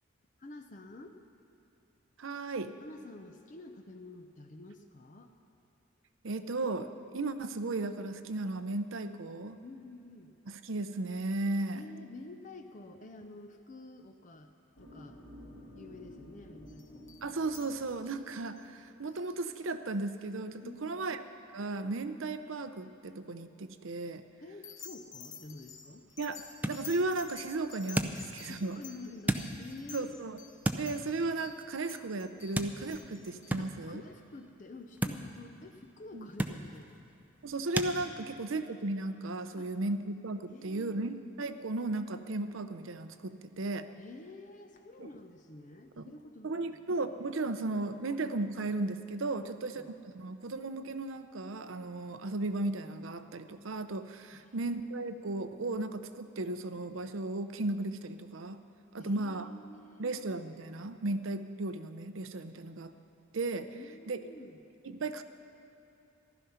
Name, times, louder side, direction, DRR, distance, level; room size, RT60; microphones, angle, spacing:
voice 1, 0.4-1.2 2.8-5.3 9.6-10.3 11.7-14.5 14.8-15.2 15.7-17.1 20.6-21.2 24.4-26.0 28.1-30.2 33.6-36.9 38.1-38.4 39.6-39.7 40.5-41.1 43.9-46.7 47.9-48.0 49.3-49.9 54.3-54.6 59.0-60.1 63.7-64.6, left 2 dB, 40° left, 5 dB, 0.6 m, -49 dB
voice 2, 2.2-2.7 6.2-9.6 10.5-11.8 17.2-21.2 21.5-24.2 26.2-26.4 26.7-28.8 29.9-30.4 30.7-34.0 36.1-36.3 37.4-43.9 45.0-45.1 46.0-46.1 46.4-58.6 58.9-59.5 60.0-62.9 63.3-63.7 64.1-64.2 64.8-65.2, right 2 dB, 75° right, 10 dB, 0.7 m, -35 dB
sound 1, 14.8-20.0, left 1 dB, 80° left, 3.5 m, -53 dB
sound 2, 16.7-18.2 18.6-18.7 19.0-19.3 20.1-20.2 24.6-33.6, left 7 dB, 60° left, 1.3 m, -51 dB
sound 3, 25.4-37.9, right 1 dB, 10° right, 0.5 m, -39 dB
15.0 x 12.5 x 5.7 m, 2.9 s
head